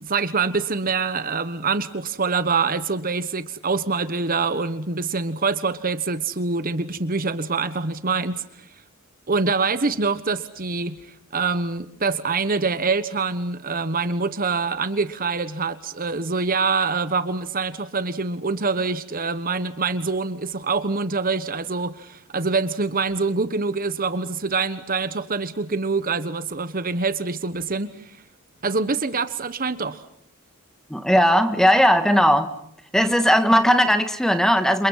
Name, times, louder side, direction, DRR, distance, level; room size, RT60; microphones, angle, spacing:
voice 1, 0.0-8.7 9.3-28.2 28.6-30.0, right 4 dB, 40° right, 12 dB, 1.3 m, -25 dB
voice 2, 30.9-32.5 32.9-34.9, equal, ahead, 8 dB, 2.0 m, -18 dB
29.5 x 28.0 x 5.7 m, 0.67 s
head